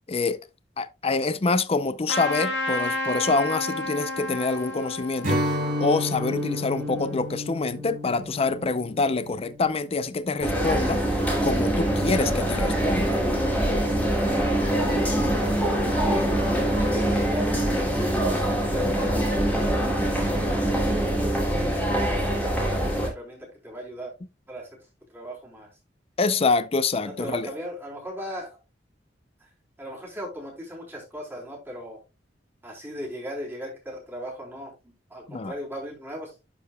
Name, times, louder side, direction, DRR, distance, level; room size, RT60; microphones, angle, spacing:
voice 1, 0.1-0.4 0.8-5.4 5.8-11.0 11.4-13.2 26.2-27.5 35.3-35.5, left 3 dB, 35° left, 0.5 m, -26 dB
Trumpet, 2.1-7.1, left 2 dB, 65° left, 2.1 m, -32 dB
Strum, 5.2-10.7, left 1 dB, 50° right, 3.4 m, -31 dB
sound 1, 10.4-23.1, right 1 dB, 10° left, 2.7 m, -24 dB
voice 2, 16.0-21.2 21.8-24.1 24.5-24.7 25.1-25.7 27.0-28.6 29.4-29.5 29.8-32.0 32.6-36.3, equal, 10° right, 3.4 m, -38 dB
11.5 x 5.1 x 2.2 m
head